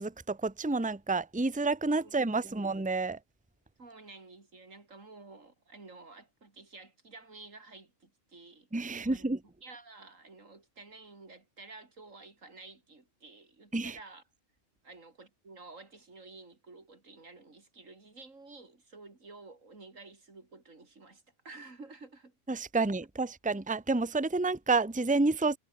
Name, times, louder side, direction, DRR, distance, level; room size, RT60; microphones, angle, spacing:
voice 1, 0.0-3.2 8.7-9.4 13.7-14.0 22.5-25.6, right 3 dB, 5° right, 1.1 m, -29 dB
voice 2, 1.9-2.6 3.8-9.3 9.6-14.2 14.8-22.4, right 3 dB, 85° right, 3.9 m, -52 dB
omnidirectional pair, 1.3 m